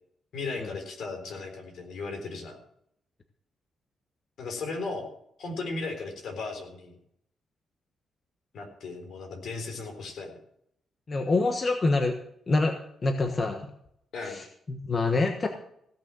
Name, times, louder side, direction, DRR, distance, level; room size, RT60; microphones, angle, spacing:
voice 1, 0.3-2.6 4.4-5.1 5.4-7.0 8.5-10.3 14.1-14.4, left 3 dB, 70° left, 3 dB, 3.8 m, -36 dB
voice 2, 11.1-12.1 12.5-12.7 13.0-13.7 14.2-15.5, left 3 dB, 35° left, 5 dB, 1.2 m, -26 dB
16.5 x 6.4 x 7.7 m, 0.72 s
cardioid pair, 115°, 0 cm